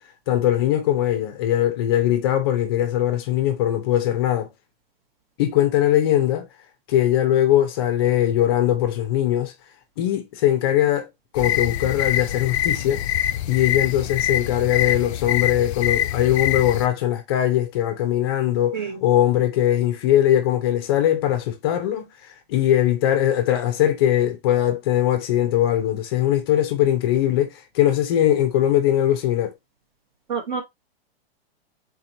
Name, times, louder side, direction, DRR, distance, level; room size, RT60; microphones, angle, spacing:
voice 1, 0.3-4.5 5.4-6.5 6.9-9.5 10.0-11.1 11.3-13.0 13.5-22.1 22.5-29.5, left 12 dB, 25° left, 0.5 m, -20 dB
sound 1, 11.4-16.9, left 12 dB, 85° left, 0.5 m, -24 dB
voice 2, 30.3-30.6, right 6 dB, 50° right, 0.8 m, -27 dB
3.9 x 2.9 x 2.6 m
hypercardioid pair, 165°, 32 cm